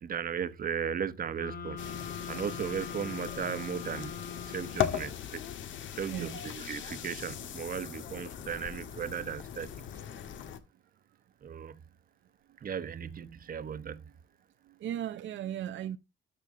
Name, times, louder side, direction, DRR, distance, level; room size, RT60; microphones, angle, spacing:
voice 1, 0.0-1.9 2.3-4.1 4.5-5.4 6.0-9.7 11.4-11.8 12.6-14.0, right 7 dB, 45° right, 1.1 m, -36 dB
sound 1, 1.4-5.2, left 7 dB, 50° left, 5.2 m, -42 dB
sound 2, 1.8-10.6, left 9 dB, 75° left, 1.6 m, -39 dB
voice 2, 6.1-6.4 13.7-14.0 14.6-16.0, right 11 dB, 70° right, 0.7 m, -37 dB
13.0 x 5.7 x 3.8 m
cardioid pair, 90°, 20 cm